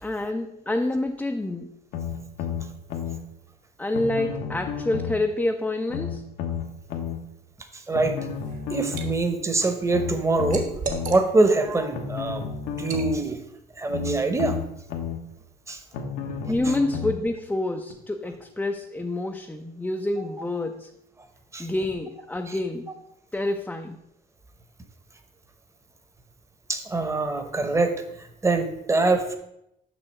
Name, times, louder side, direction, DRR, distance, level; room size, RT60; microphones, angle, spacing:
voice 1, 0.0-1.7 3.8-6.2 16.5-20.9 21.6-22.9 23.3-24.0, left 2 dB, 10° left, 4 dB, 0.4 m, -27 dB
sound 1, 1.9-3.2 3.9-5.2 5.9-7.2 7.9-9.2 9.9-11.2 11.9-13.2 13.9-15.2 15.9-17.2 17.9-18.0, left 7 dB, 90° left, 1.0 m, -31 dB
voice 2, 7.7-8.2 8.7-10.7 11.1-12.5 12.8-13.4 13.8-14.6 15.7-15.8 16.4-16.7 21.5-21.7 22.5-22.6 26.7-27.9 28.4-29.4, right 3 dB, 15° right, 8 dB, 0.9 m, -24 dB
Liquid, 8.2-9.1 9.5-11.6 12.0-12.2 12.8-13.1, right 4 dB, 50° right, 1.3 m, -36 dB
6.2 x 5.7 x 4.4 m, 0.80 s
cardioid pair, 110°, 17 cm